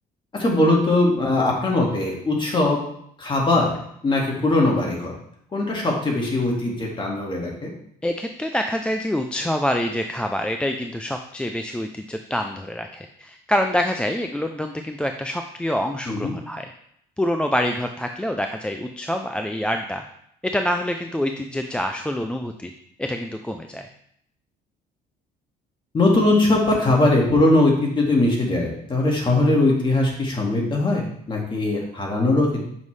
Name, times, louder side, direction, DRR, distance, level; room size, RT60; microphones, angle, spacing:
voice 1, 0.3-2.8 3.2-3.8 4.0-5.1 5.5-7.7 16.1-16.3 25.9-32.6, left 2 dB, 30° left, -1 dB, 2.0 m, -20 dB
voice 2, 8.0-16.7 17.2-20.1 20.4-22.7 23.0-23.9, left 1 dB, 5° left, 5 dB, 0.4 m, -26 dB
7.2 x 5.3 x 3.2 m, 0.70 s
cardioid pair, 110°, 17 cm